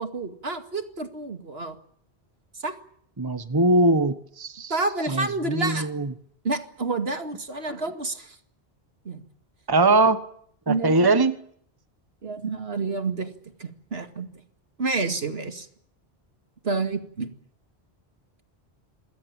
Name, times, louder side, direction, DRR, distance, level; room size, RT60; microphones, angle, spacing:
voice 1, 0.0-1.8 2.6-2.7 4.7-5.9 6.4-8.4 9.1-9.2 9.9-10.0 10.7-11.1 12.2-13.3 13.6-14.3 14.8-15.7 16.6-17.3, right 3 dB, 65° right, 7 dB, 2.4 m, -29 dB
voice 2, 3.2-4.7 5.1-6.1 9.7-10.2 10.7-11.4, right 2 dB, 20° right, 11 dB, 1.3 m, -21 dB
26.5 x 21.5 x 8.9 m, 0.64 s
omnidirectional pair, 1.1 m